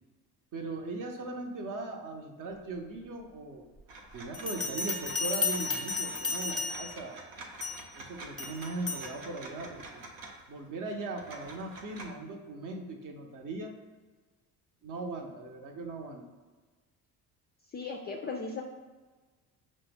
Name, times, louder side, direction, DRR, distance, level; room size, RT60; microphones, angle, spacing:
voice 1, 0.5-3.7 4.1-7.2 8.0-10.1 10.5-13.7 14.8-16.2, right 2 dB, 45° right, 3 dB, 0.7 m, -39 dB
sound 1, 3.9-10.6 11.2-12.0, right 2 dB, 75° right, 0.8 m, -47 dB
Bell, 4.3-7.1 7.6-7.9 8.4-9.1, left 4 dB, ahead, 0.7 m, -33 dB
voice 2, 17.7-18.6, left 4 dB, 25° left, 0 dB, 0.3 m, -37 dB
5.3 x 2.0 x 3.4 m, 1.3 s
hypercardioid pair, 60°, 46 cm